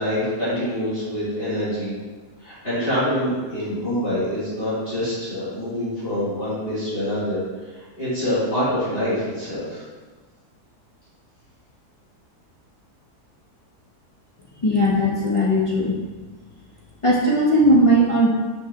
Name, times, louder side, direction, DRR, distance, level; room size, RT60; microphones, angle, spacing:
voice 1, 0.0-1.9 2.4-7.4 7.7-9.8, equal, 35° left, -11 dB, 2.1 m, -25 dB
voice 2, 14.6-16.0 17.0-18.3, equal, 55° left, -4 dB, 0.3 m, -18 dB
6.4 x 3.1 x 4.7 m, 1.4 s
omnidirectional pair, 1.7 m